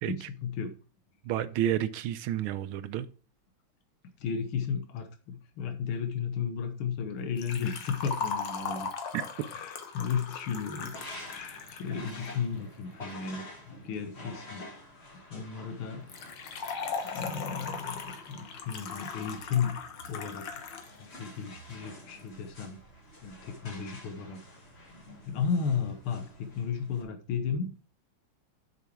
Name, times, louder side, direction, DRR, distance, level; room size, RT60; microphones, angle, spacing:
voice 1, 0.1-0.7 4.2-8.9 9.4-11.0 11.2-13.4 13.8-14.6 15.3-16.1 17.1-19.8 20.1-20.5 21.0-22.8 23.2-24.4 25.3-27.7, left 6 dB, 85° left, 1.8 m, -34 dB
voice 2, 1.2-3.1 9.1-9.2 9.5-9.6, right 11 dB, 85° right, 1.5 m, -30 dB
Liquid, 7.4-12.4 16.1-20.9 21.2-21.3 22.2-22.3, left 5 dB, 65° left, 1.6 m, -38 dB
sound 1, 10.8-27.0, left 1 dB, 30° left, 1.9 m, -49 dB
6.9 x 5.6 x 4.6 m
omnidirectional pair, 2.3 m